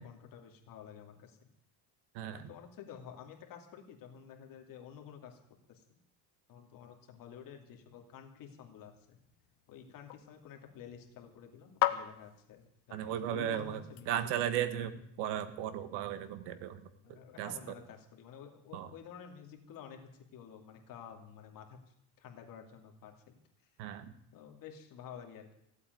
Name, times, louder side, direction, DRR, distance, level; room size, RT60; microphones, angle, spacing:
voice 1, 0.0-1.4 2.3-5.4 5.7-6.0 6.5-9.2 9.7-14.3 17.0-21.8 22.2-23.4 24.3-25.5, left 8 dB, 50° left, 3 dB, 2.7 m, -51 dB
voice 2, 2.1-2.5 12.9-16.8 17.1-17.8 18.7-18.9 23.8-24.1, right 10 dB, 75° right, 12 dB, 1.7 m, -36 dB
sound 1, 8.8-14.6, left 16 dB, 75° left, 1.3 m, -40 dB
16.0 x 8.3 x 9.4 m, 0.76 s
cardioid pair, 135°, 41 cm